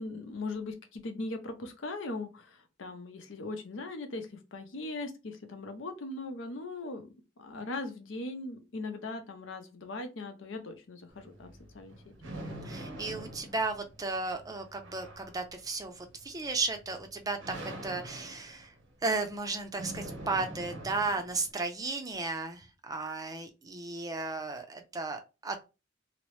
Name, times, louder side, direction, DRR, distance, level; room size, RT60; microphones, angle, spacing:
voice 1, 0.0-7.1 7.4-11.5 11.7-12.0, left 2 dB, 85° left, 6 dB, 0.6 m, -39 dB
sound 1, 11.1-21.5, right 1 dB, 80° right, 0.7 m, -45 dB
voice 2, 12.2-18.7 19.0-25.6, right 3 dB, 20° right, 6 dB, 0.4 m, -35 dB
2.9 x 2.0 x 3.0 m, 0.28 s
head